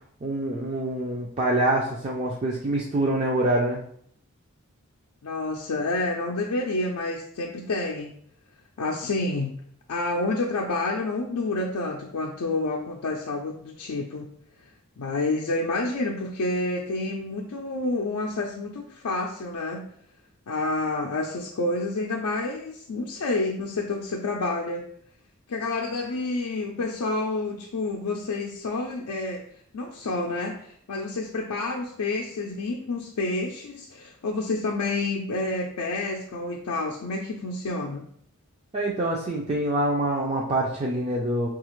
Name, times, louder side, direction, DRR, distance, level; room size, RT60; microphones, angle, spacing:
voice 1, 0.2-3.8 38.7-41.5, right 1 dB, 30° right, -3 dB, 0.4 m, -25 dB
voice 2, 5.2-8.2 8.8-9.5 9.9-14.3 15.0-19.8 20.5-24.8 25.5-29.4 29.7-38.0, left 2 dB, 80° left, 0 dB, 0.4 m, -29 dB
4.8 x 2.4 x 3.0 m, 0.65 s
head